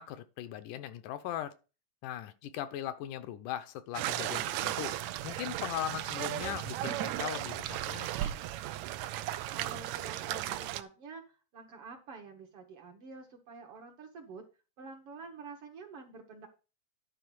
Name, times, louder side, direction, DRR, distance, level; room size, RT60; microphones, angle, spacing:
voice 1, 0.0-1.5 2.0-5.0 5.2-8.3, left 11 dB, 80° left, 2.2 m, -39 dB
sound 1, 3.9-10.8, right 13 dB, 80° right, 1.6 m, -35 dB
voice 2, 9.5-14.4 14.8-16.5, right 4 dB, 60° right, 1.7 m, -48 dB
10.5 x 4.2 x 6.1 m
omnidirectional pair, 3.7 m